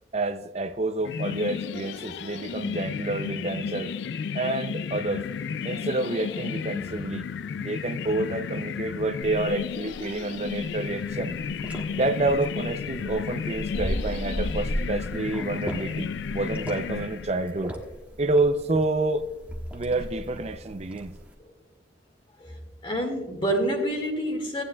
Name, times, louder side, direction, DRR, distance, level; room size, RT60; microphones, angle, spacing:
voice 1, 0.1-3.9 4.3-5.3 5.6-7.2 7.6-11.4 11.9-17.8 18.2-19.2 19.7-21.1, right 2 dB, 35° right, 0.5 m, -28 dB
sound 1, 1.0-17.6, left 6 dB, 70° left, 0.3 m, -33 dB
sound 2, 9.2-21.3, equal, 10° right, 1.2 m, -37 dB
voice 2, 22.8-24.6, right 1 dB, 30° left, 1.9 m, -27 dB
16.5 x 9.6 x 2.3 m
head